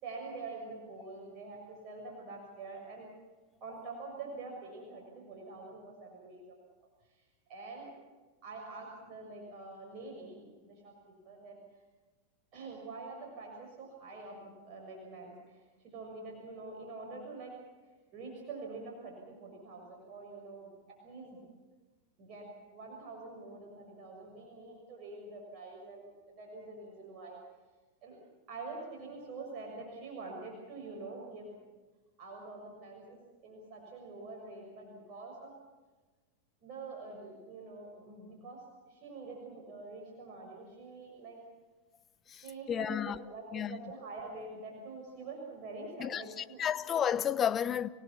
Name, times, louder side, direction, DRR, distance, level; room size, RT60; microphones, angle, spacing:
voice 1, 0.0-3.1 3.6-6.6 7.0-7.9 8.4-11.8 12.5-17.5 18.1-20.7 21.0-21.4 22.2-22.5 22.7-27.4 28.0-28.2 28.5-31.5 32.2-33.2 33.4-35.5 36.6-41.4 42.3-46.6, right 3 dB, 45° right, 6.6 m, -46 dB
voice 2, 42.3-43.2 43.5-43.8 46.0-47.9, left 9 dB, 30° left, 1.0 m, -32 dB
28.0 x 17.5 x 7.3 m
hypercardioid pair, 100°, 0 cm